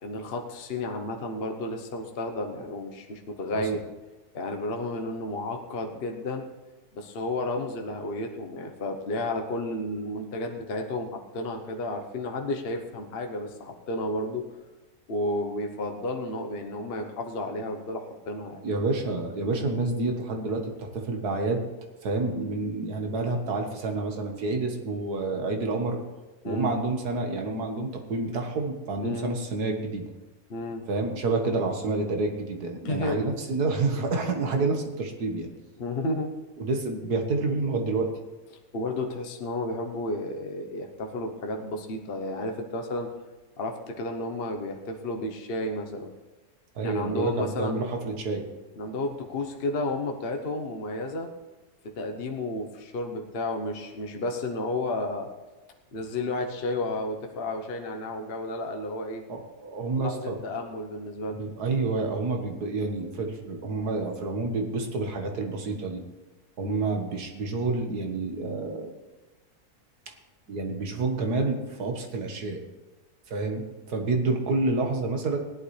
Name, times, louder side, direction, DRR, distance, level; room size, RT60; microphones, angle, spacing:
voice 1, 0.0-3.8 4.3-6.5 6.9-14.5 15.1-18.6 22.4-22.6 26.4-26.7 29.0-29.3 30.5-30.8 32.8-33.2 35.8-36.3 38.7-43.1 43.6-46.1 46.8-47.8 48.8-51.3 51.8-55.3 55.9-59.2 59.9-61.4 66.6-66.9, left 2 dB, 45° left, 3 dB, 1.1 m, -32 dB
voice 2, 18.6-21.6 22.0-26.0 26.4-30.0 30.9-35.5 36.6-38.1 46.8-48.4 59.3-60.4 61.3-66.0 66.6-68.9 70.5-72.6 73.3-75.4, right 3 dB, 80° right, 3 dB, 2.0 m, -28 dB
17.0 x 11.0 x 3.3 m, 1.2 s
omnidirectional pair, 1.6 m